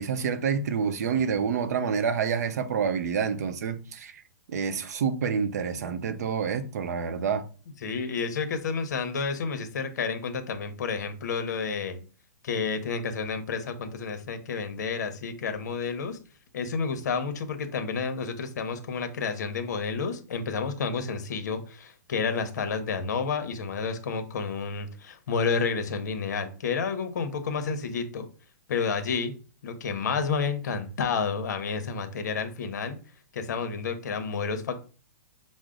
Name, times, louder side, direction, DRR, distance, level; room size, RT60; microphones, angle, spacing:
voice 1, 0.0-4.2 4.5-7.4, right 6 dB, 60° right, 0.6 m, -28 dB
voice 2, 7.8-12.0 12.4-16.2 16.5-28.3 28.7-29.3 29.6-33.0 33.3-34.8, left 5 dB, 65° left, 0.9 m, -30 dB
6.2 x 2.1 x 3.7 m
hypercardioid pair, 165°, 10 cm